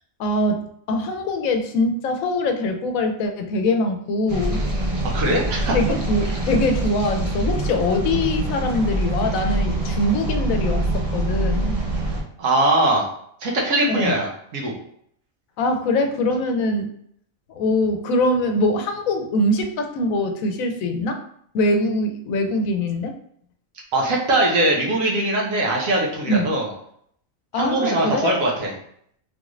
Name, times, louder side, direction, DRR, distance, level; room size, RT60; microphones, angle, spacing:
voice 1, 0.2-0.6 0.9-4.6 5.7-10.9 11.1-11.8 13.9-14.2 15.6-16.9 17.5-21.2 21.5-23.1 26.3-26.5 27.5-28.3, left 1 dB, 85° left, 6 dB, 1.0 m, -23 dB
sound 1, 4.3-12.2, right 1 dB, 45° right, 0.5 m, -24 dB
voice 2, 5.0-5.7 6.3-6.4 12.4-13.1 13.4-14.7 23.9-26.7 27.5-28.7, right 1 dB, 80° right, -1 dB, 1.3 m, -21 dB
3.8 x 2.5 x 3.0 m, 0.67 s
omnidirectional pair, 1.4 m